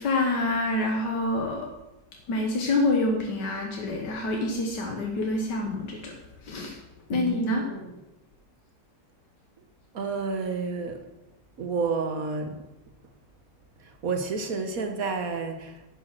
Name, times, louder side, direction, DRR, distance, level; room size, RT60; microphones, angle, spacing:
voice 1, 0.0-1.7 2.3-6.1 6.4-6.8 7.1-7.6, left 2 dB, 85° left, 1 dB, 1.9 m, -27 dB
voice 2, 7.1-7.9 9.9-11.0 11.6-12.6 13.8-15.9, right 4 dB, 55° right, 6 dB, 1.7 m, -30 dB
10.5 x 9.1 x 6.1 m, 1.0 s
omnidirectional pair, 1.8 m